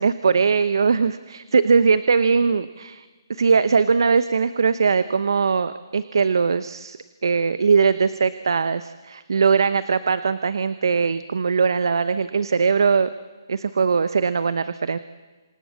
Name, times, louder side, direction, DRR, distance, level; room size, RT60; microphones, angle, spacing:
voice 1, 0.0-7.0 7.2-13.1 13.5-15.0, right 5 dB, 70° right, 13 dB, 0.9 m, -20 dB
28.0 x 26.5 x 7.4 m, 1.4 s
hypercardioid pair, 150°, 2 cm